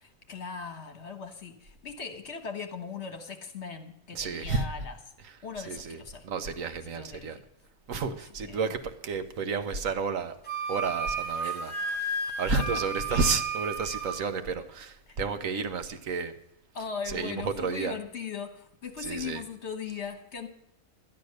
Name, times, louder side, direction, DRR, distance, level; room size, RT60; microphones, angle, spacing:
voice 1, 0.0-5.0 5.4-6.2 6.9-7.3 8.1-8.2 8.4-8.8 11.4-11.6 11.9-12.0 12.5-12.8 13.1-13.3 15.1-15.2 16.7-20.5, left 6 dB, 55° left, 6 dB, 1.6 m, -39 dB
voice 2, 4.1-4.6 5.7-6.0 6.2-7.4 7.9-10.3 10.7-16.3 17.1-18.0 19.0-19.4, right 4 dB, 75° right, 9 dB, 1.4 m, -31 dB
Wind instrument woodwind instrument, 10.4-14.2, right 3 dB, 5° left, 2.9 m, -33 dB
12.0 x 10.5 x 6.5 m, 0.81 s
omnidirectional pair, 1.4 m